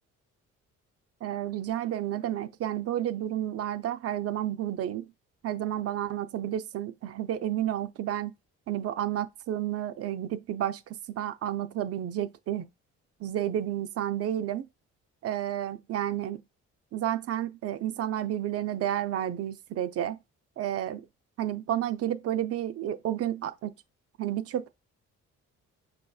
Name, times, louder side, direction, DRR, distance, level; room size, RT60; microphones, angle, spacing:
voice 1, 1.2-5.1 5.4-8.3 8.7-12.7 13.2-14.7 15.2-16.4 16.9-20.2 20.6-21.0 21.4-23.7 24.2-24.7, right 11 dB, 55° right, 0.4 m, -31 dB
5.5 x 2.7 x 2.3 m
cardioid pair, 90°, 30 cm